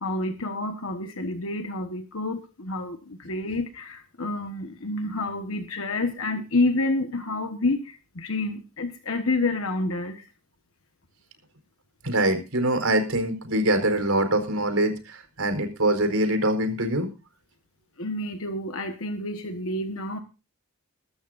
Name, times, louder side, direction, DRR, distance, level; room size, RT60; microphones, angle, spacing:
voice 1, 0.0-10.2 18.0-20.2, left 2 dB, 65° left, 6 dB, 1.3 m, -29 dB
voice 2, 12.0-17.1, right 1 dB, 75° right, 7 dB, 4.5 m, -24 dB
22.5 x 12.5 x 2.6 m, 0.30 s
head